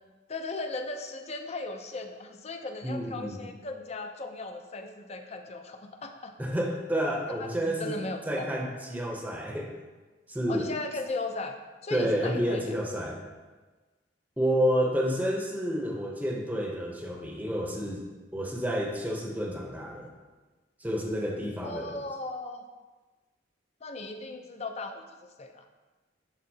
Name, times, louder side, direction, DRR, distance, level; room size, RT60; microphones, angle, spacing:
voice 1, 0.3-6.3 7.4-8.5 10.5-11.6 11.8-12.6 21.6-22.6 23.8-25.7, left 2 dB, 35° left, 5 dB, 0.5 m, -37 dB
voice 2, 2.8-3.4 6.4-7.9 8.3-9.7 10.3-10.7 11.9-13.2 14.4-18.0 18.3-20.1 20.8-21.9, equal, 10° right, 0 dB, 0.7 m, -30 dB
11.0 x 3.7 x 2.8 m, 1.3 s
head